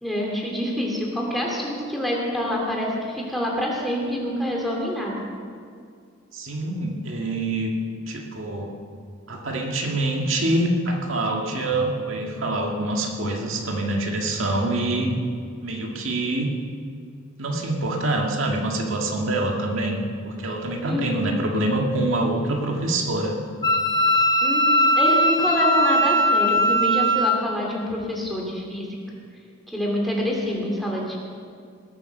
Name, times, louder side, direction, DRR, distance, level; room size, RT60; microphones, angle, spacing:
voice 1, 0.0-5.2 20.9-21.2 24.4-28.9 29.7-31.2, equal, ahead, -2 dB, 2.5 m, -26 dB
voice 2, 6.3-7.7 8.1-8.7 9.3-15.2 15.6-16.5 17.4-23.4, right 2 dB, 75° right, 1 dB, 1.8 m, -25 dB
Wind instrument woodwind instrument, 23.6-27.4, equal, 20° left, 0.8 m, -19 dB
19.5 x 8.5 x 6.6 m, 2.2 s
head